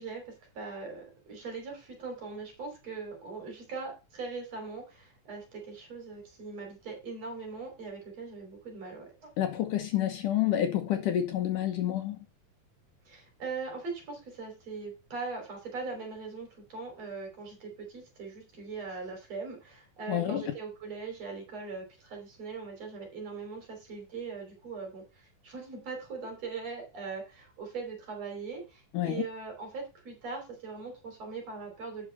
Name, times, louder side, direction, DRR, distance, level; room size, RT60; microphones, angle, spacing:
voice 1, 0.0-9.3 13.1-32.1, right 4 dB, 45° right, 4.2 m, -40 dB
voice 2, 9.4-12.2 20.1-20.5 28.9-29.2, left 11 dB, 70° left, 2.4 m, -29 dB
8.7 x 6.3 x 5.3 m
omnidirectional pair, 4.2 m